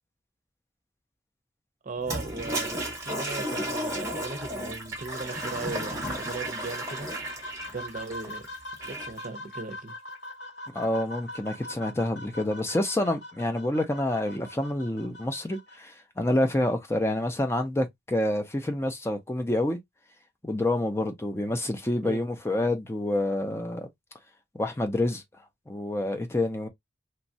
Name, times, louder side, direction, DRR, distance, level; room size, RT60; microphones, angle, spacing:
voice 1, 1.8-7.1 7.7-8.5 8.8-9.9 22.0-22.2, right 3 dB, 45° right, 0.6 m, -37 dB
Toilet flush, 2.0-9.2, right 1 dB, 15° right, 0.9 m, -34 dB
sound 1, 4.8-15.8, left 1 dB, 65° left, 0.9 m, -43 dB
voice 2, 10.7-19.8 20.4-23.9 24.5-25.2 25.7-26.7, left 1 dB, 15° left, 0.5 m, -28 dB
3.0 x 2.3 x 2.6 m
head